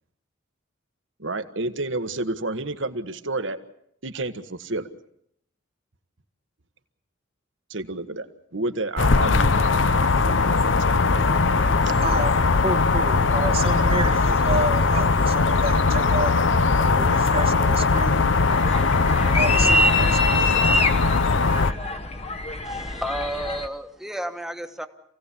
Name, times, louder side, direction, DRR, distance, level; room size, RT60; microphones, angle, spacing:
voice 1, 1.2-3.6 4.0-4.9 7.7-9.5 10.2-11.0 11.8-12.0, right 2 dB, 70° right, 10 dB, 1.5 m, -30 dB
sound 1, 9.0-21.7, left 4 dB, 70° left, 0.8 m, -20 dB
voice 2, 11.0-12.4 12.6-16.3 16.8-18.3 19.4-20.4, right 2 dB, 30° right, 5 dB, 1.1 m, -30 dB
sound 2, 18.5-23.7, left 1 dB, 35° left, 1.2 m, -25 dB
voice 3, 22.6-24.9, right 1 dB, ahead, 6 dB, 1.4 m, -32 dB
27.5 x 17.0 x 8.5 m, 0.75 s
head